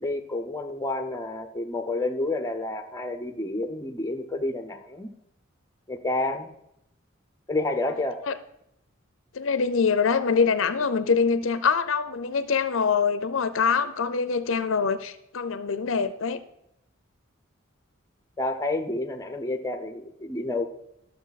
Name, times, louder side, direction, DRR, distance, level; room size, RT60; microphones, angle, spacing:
voice 1, 0.0-5.1 5.9-6.5 7.5-8.2 18.4-20.6, left 2 dB, 15° left, 5 dB, 0.8 m, -29 dB
voice 2, 9.3-16.4, left 5 dB, 75° left, 13 dB, 0.6 m, -24 dB
12.0 x 7.0 x 4.1 m, 0.80 s
head